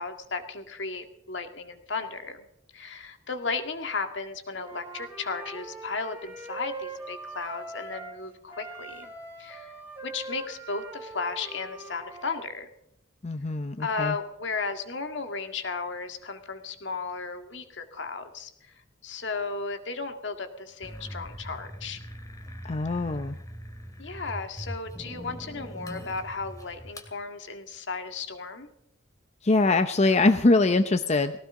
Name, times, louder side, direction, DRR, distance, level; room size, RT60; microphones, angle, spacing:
voice 1, 0.0-2.4 2.7-9.1 9.4-9.7 10.0-12.7 13.8-22.0 24.0-28.7, left 4 dB, 65° left, 7 dB, 2.0 m, -35 dB
Wind instrument woodwind instrument, 4.5-8.2 8.5-12.4, right 2 dB, 10° right, 3.7 m, -42 dB
voice 2, 13.2-14.1 22.6-23.4 29.4-31.3, left 2 dB, 35° left, 9 dB, 0.7 m, -23 dB
sound 1, 20.8-27.1, equal, 20° left, 2.4 m, -41 dB
19.0 x 18.0 x 3.8 m, 0.76 s
head